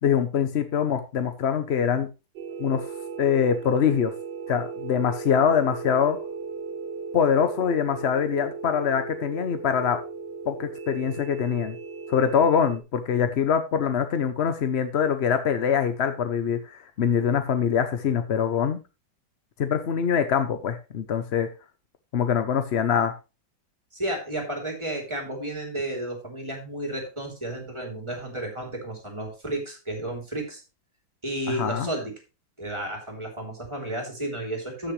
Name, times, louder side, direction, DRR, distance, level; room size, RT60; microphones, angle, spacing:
voice 1, 0.0-2.1 2.6-2.9 3.2-4.1 4.5-6.2 7.1-10.0 10.5-11.8 12.1-18.8 19.6-21.5 22.1-23.1 31.5-31.9, left 7 dB, 60° left, 9 dB, 0.6 m, -24 dB
sound 1, 2.4-12.8, right 5 dB, 65° right, 1.5 m, -37 dB
voice 2, 23.9-30.6 31.2-32.1 32.6-34.9, right 1 dB, 15° right, 1 dB, 3.1 m, -32 dB
14.0 x 6.5 x 3.2 m, 0.29 s
omnidirectional pair, 2.1 m